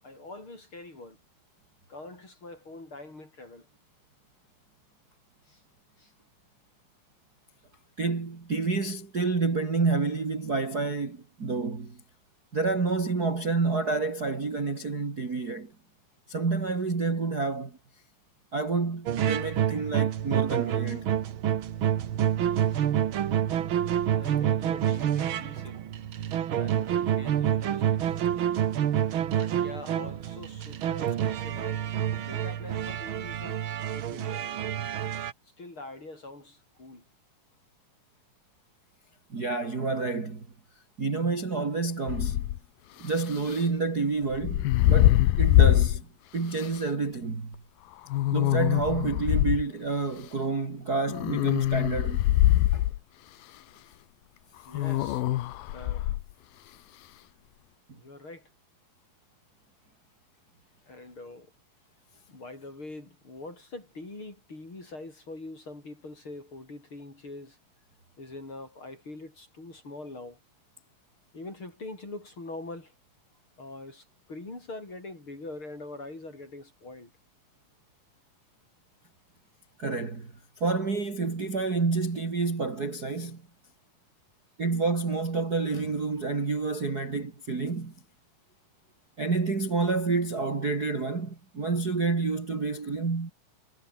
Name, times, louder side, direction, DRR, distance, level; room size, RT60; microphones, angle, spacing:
voice 1, 0.0-1.2 1.9-3.7 5.4-5.6 6.0-6.1 22.7-22.9 24.1-25.8 26.5-28.2 29.3-31.9 32.2-33.6 33.9-34.7 35.4-37.0 53.3-53.5 54.6-55.2 55.7-56.1 57.9-58.5 60.9-61.5 62.3-67.6 68.2-70.4 71.3-72.9 73.6-77.1, left 2 dB, 35° left, 7.8 m, -44 dB
voice 2, 8.0-12.0 12.5-15.7 16.3-17.8 18.5-21.1 39.3-40.5 41.0-42.5 43.0-46.1 46.3-47.6 48.3-52.3 52.7-52.9 79.8-83.4 84.6-87.9 89.2-93.3, right 4 dB, 30° right, 2.9 m, -29 dB
sound 1, 19.1-35.3, right 10 dB, 85° right, 1.1 m, -28 dB
sound 2, 42.1-42.6 44.3-46.0 46.6-46.7 48.1-49.6 51.1-53.0 54.7-56.2, left 15 dB, 85° left, 2.9 m, -23 dB
omnidirectional pair, 4.2 m